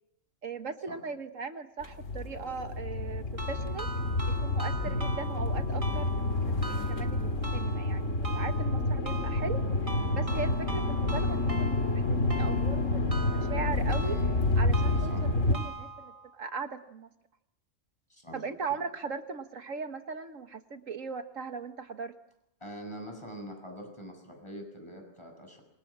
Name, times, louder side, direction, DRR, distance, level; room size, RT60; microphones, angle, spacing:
voice 1, 0.4-3.9 4.4-6.4 6.7-14.2 14.6-17.1 18.3-22.1, right 5 dB, 75° right, 8 dB, 1.8 m, -39 dB
sound 1, 1.8-15.6, left 2 dB, 70° left, 2.7 m, -29 dB
sound 2, 3.4-16.3, right 3 dB, 25° right, 2.2 m, -42 dB
voice 2, 14.0-14.4 15.1-15.3 18.1-18.4 22.6-25.6, equal, 20° left, 3 dB, 8.1 m, -44 dB
27.5 x 26.0 x 7.5 m, 0.79 s
omnidirectional pair, 1.4 m